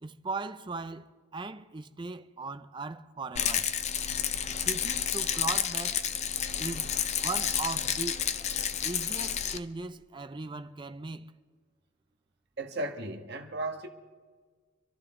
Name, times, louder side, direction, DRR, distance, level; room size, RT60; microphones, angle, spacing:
voice 1, 0.0-3.7 4.6-6.1 6.6-6.9 7.2-8.3 8.8-11.3, right 3 dB, 20° right, 0.5 m, -38 dB
Rattle, 3.3-9.6, left 8 dB, 30° left, 0.5 m, -30 dB
voice 2, 12.6-13.9, right 2 dB, 50° right, 1.4 m, -35 dB
26.0 x 12.5 x 3.7 m
head